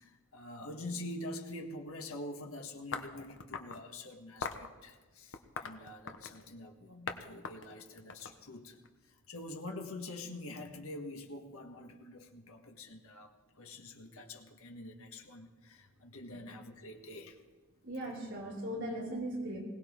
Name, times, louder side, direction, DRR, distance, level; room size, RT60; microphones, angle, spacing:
voice 1, 0.0-8.8 9.1-17.4, left 1 dB, 85° left, 3 dB, 1.5 m, -46 dB
sound 1, 2.9-3.8 4.4-4.7 5.3-6.5 7.1-7.2 7.4-8.9, left 5 dB, 60° left, 1.0 m, -41 dB
voice 2, 17.8-19.6, right 1 dB, 60° right, -5 dB, 4.9 m, -38 dB
21.0 x 18.0 x 3.7 m, 1.3 s
head